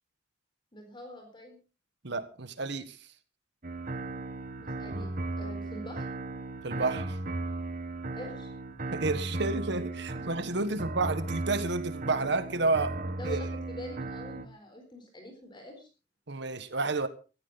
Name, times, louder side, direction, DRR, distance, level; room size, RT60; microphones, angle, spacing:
voice 1, 0.7-1.6 4.6-6.1 8.1-8.5 10.1-10.3 10.7-10.8 13.2-13.5 13.7-15.9, left 1 dB, 25° left, 4.2 m, -45 dB
voice 2, 2.0-3.0 6.6-7.2 8.9-13.0 13.2-13.4 16.3-17.1, right 3 dB, 65° right, 1.5 m, -30 dB
sound 1, 3.6-14.5, right 2 dB, 45° right, 1.8 m, -36 dB
17.5 x 14.5 x 4.1 m
head